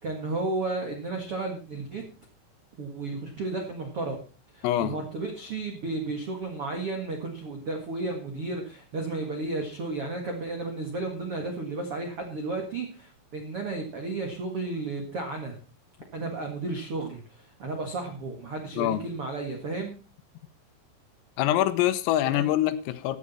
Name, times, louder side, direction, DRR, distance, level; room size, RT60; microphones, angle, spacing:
voice 1, 0.0-2.0 2.7-4.2 4.5-15.6 16.1-20.0, right 3 dB, 70° right, 1.3 m, -33 dB
voice 2, 4.6-5.0 18.8-19.0 21.4-23.2, left 13 dB, 85° left, 3.7 m, -24 dB
15.0 x 9.8 x 4.2 m
omnidirectional pair, 5.9 m